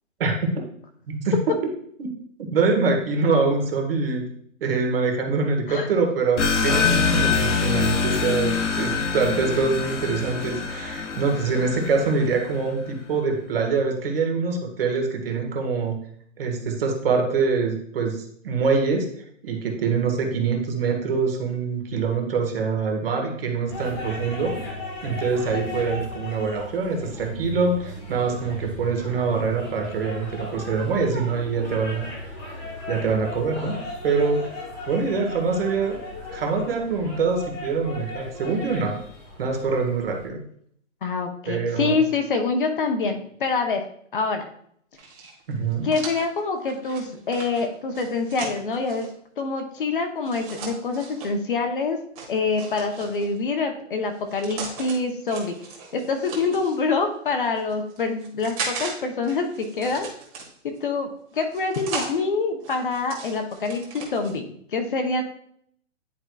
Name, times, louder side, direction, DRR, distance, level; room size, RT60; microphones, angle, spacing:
voice 1, 0.2-0.5 1.1-1.4 2.0-2.1 2.4-4.2 4.6-16.0 16.4-19.1 19.4-24.6 25.0-32.1 32.9-33.8 34.0-34.5 34.9-36.0 36.3-39.0 39.4-40.4 41.5-42.0 45.5-45.9, right 4 dB, 45° right, 2 dB, 1.5 m, -24 dB
sound 1, 6.4-12.6, left 5 dB, 65° left, 1.1 m, -25 dB
sound 2, 23.7-40.3, left 1 dB, 15° left, 1.3 m, -36 dB
voice 2, 41.0-43.8 44.1-44.5 45.8-49.1 49.4-52.0 52.3-55.5 55.9-60.1 60.8-65.2, left 4 dB, 40° left, 5 dB, 0.8 m, -26 dB
sound 3, 45.0-49.1 50.2-51.3 52.2-53.4 54.1-55.0 55.3-56.8 57.4-58.9 59.2-60.8 61.3-62.1 62.6-64.3, right 4 dB, 30° right, 1.5 m, -37 dB
10.0 x 4.7 x 2.3 m, 0.65 s
hypercardioid pair, 165°, 39 cm